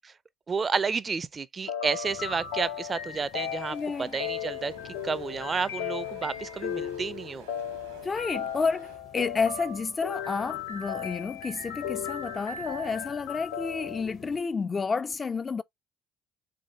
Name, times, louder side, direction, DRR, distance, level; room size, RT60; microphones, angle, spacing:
voice 1, 0.5-4.7 5.0-7.5, right 5 dB, 35° right, 0.4 m, -31 dB
sound 1, 1.7-14.0, left 8 dB, 80° left, 0.6 m, -36 dB
sound 2, 2.0-14.4, left 7 dB, 60° left, 1.0 m, -52 dB
sound 3, 3.4-9.0, right 5 dB, 85° right, 1.3 m, -52 dB
voice 2, 3.7-4.1 8.0-15.6, left 4 dB, 35° left, 0.4 m, -30 dB
3.9 x 3.7 x 3.3 m
hypercardioid pair, 55°, 0 cm